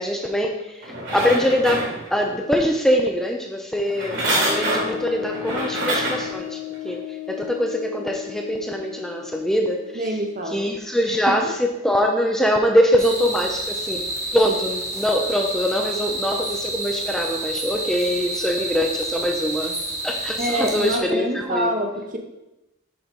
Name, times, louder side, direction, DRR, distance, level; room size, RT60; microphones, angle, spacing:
voice 1, 0.0-6.6 6.8-10.0 10.5-14.0 14.3-19.8 20.0-21.7, equal, 5° left, 1 dB, 0.5 m, -23 dB
sound 1, 0.8-2.3 3.9-6.3 6.9-7.0, right 1 dB, 70° right, 2.7 m, -26 dB
sound 2, 3.9-11.4, left 16 dB, 80° left, 0.4 m, -37 dB
voice 2, 9.9-10.7 11.1-11.5 20.4-22.2, equal, 45° right, 3 dB, 0.9 m, -26 dB
sound 3, 13.0-21.0, right 1 dB, 15° right, 1.0 m, -29 dB
7.0 x 3.9 x 5.3 m, 0.94 s
head